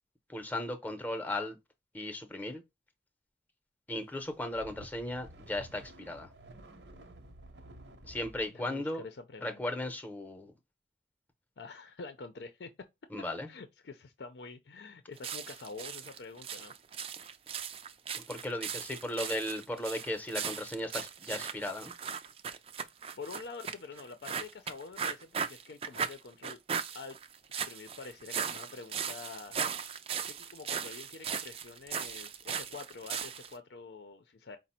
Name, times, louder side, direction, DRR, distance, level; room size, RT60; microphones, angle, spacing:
voice 1, 0.3-1.6 1.9-2.6 3.9-6.3 8.1-9.0 9.4-10.5 13.1-13.5 18.1-21.9, left 1 dB, 10° left, 0.6 m, -36 dB
sound 1, 4.2-8.5, right 1 dB, 75° right, 0.8 m, -52 dB
voice 2, 8.5-9.6 11.6-12.7 13.5-16.7 23.2-26.6 26.9-27.2 27.5-29.6 30.2-34.6, left 4 dB, 70° left, 0.5 m, -46 dB
sound 2, 15.2-33.5, right 7 dB, 35° right, 0.4 m, -38 dB
5.0 x 2.0 x 4.1 m
head